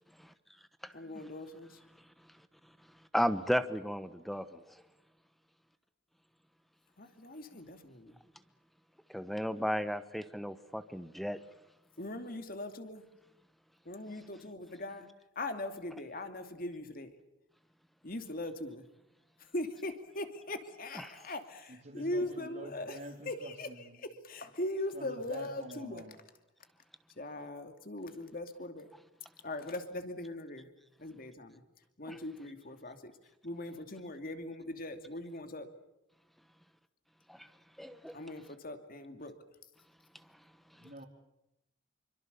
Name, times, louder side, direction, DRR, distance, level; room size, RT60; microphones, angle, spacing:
voice 1, 0.9-1.8 7.0-8.2 12.0-13.1 13.8-15.1 15.4-17.1 18.0-18.8 19.4-23.0 23.3-26.0 27.2-28.9 29.4-30.7 31.0-31.6 32.0-33.1 33.4-35.7 38.1-39.3, left 1 dB, 45° left, 7 dB, 2.7 m, -40 dB
voice 2, 3.1-4.6 9.1-11.4 32.1-32.2 37.3-37.4 37.8-38.2, equal, ahead, 12 dB, 1.1 m, -33 dB
voice 3, 21.7-24.0 24.9-26.2 40.7-41.1, right 1 dB, 50° right, -2 dB, 3.5 m, -48 dB
27.5 x 24.5 x 7.0 m, 0.90 s
head